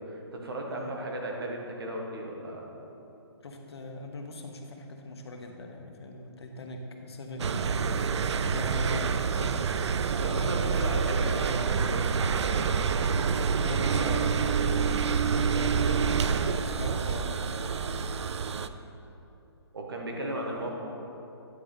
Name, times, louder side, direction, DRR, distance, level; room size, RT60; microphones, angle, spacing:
voice 1, 0.1-2.7 10.2-12.9 19.7-20.7, right 1 dB, 55° right, 0 dB, 1.1 m, -36 dB
voice 2, 3.4-7.8 8.4-9.7 10.5-11.0 13.6-17.9 20.1-20.7, left 2 dB, 65° left, 3 dB, 1.0 m, -40 dB
sound 1, 7.4-18.7, right 6 dB, 80° right, 0.4 m, -27 dB
9.8 x 3.7 x 5.6 m, 2.8 s
hypercardioid pair, 175°, 14 cm